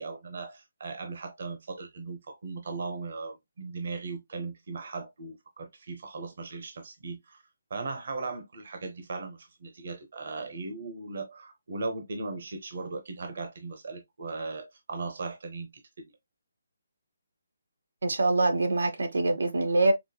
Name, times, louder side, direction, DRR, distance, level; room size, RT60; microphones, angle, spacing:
voice 1, 0.0-7.4 7.7-15.7 16.0-16.1, right 3 dB, 50° right, 0.8 m, -38 dB
voice 2, 18.0-19.9, right 2 dB, 85° right, 1.0 m, -24 dB
5.1 x 2.1 x 2.2 m
hypercardioid pair, 175°, 0 cm